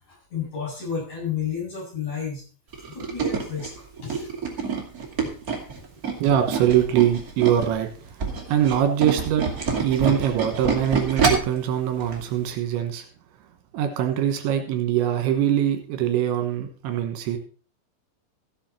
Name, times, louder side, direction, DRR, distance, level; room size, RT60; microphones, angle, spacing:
voice 1, 0.1-2.4 2.9-4.3 5.7-5.8, left 7 dB, 40° left, -5 dB, 9.0 m, -32 dB
Tools, 2.7-7.7 8.1-11.6 12.0-12.2 12.5-12.6, right 5 dB, 30° right, 1.7 m, -26 dB
voice 2, 6.2-7.9 8.3-9.5 9.8-13.1 13.7-17.4, right 10 dB, 80° right, 6 dB, 3.6 m, -23 dB
15.0 x 8.6 x 4.4 m, 0.38 s
omnidirectional pair, 5.4 m